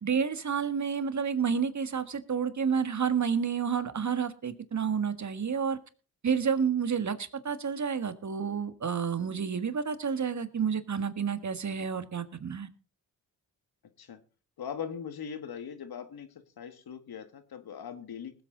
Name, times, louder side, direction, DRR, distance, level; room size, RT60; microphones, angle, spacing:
voice 1, 0.0-5.8 6.2-12.7, right 6 dB, 40° right, 1.6 m, -30 dB
voice 2, 14.6-16.3 16.6-18.3, left 7 dB, 60° left, 1.8 m, -40 dB
20.0 x 8.0 x 3.9 m
supercardioid pair, 45°, 42 cm